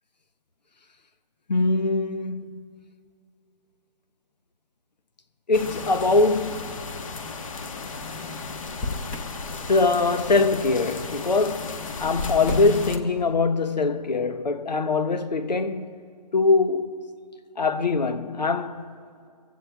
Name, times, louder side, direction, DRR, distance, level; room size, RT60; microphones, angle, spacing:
voice 1, 1.5-2.6 5.5-6.9 9.7-15.9 16.3-17.0 17.6-18.9, left 3 dB, 90° left, 1.0 m, -23 dB
sound 1, 5.5-13.0, left 4 dB, 50° left, 1.3 m, -35 dB
Motor vehicle (road), 8.7-9.4 12.4-13.0, left 2 dB, 15° left, 0.8 m, -32 dB
26.0 x 15.5 x 2.3 m
hypercardioid pair, 155°, 21 cm